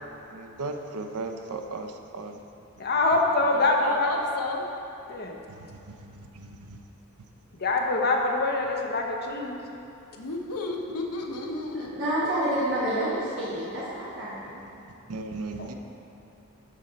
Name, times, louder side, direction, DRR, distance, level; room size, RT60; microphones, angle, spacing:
voice 1, 0.3-2.4 5.5-6.8 12.2-12.3 15.1-15.7, right 3 dB, 85° right, 5 dB, 0.6 m, -37 dB
voice 2, 2.8-4.1 5.1-5.3 7.6-9.6 15.6-15.7, left 2 dB, 45° left, 0 dB, 0.8 m, -24 dB
voice 3, 3.5-4.7 10.2-12.0, left 2 dB, 90° left, 1 dB, 0.8 m, -33 dB
voice 4, 11.9-14.4, right 1 dB, 55° right, -9 dB, 1.3 m, -28 dB
12.5 x 4.2 x 3.9 m, 2.9 s
head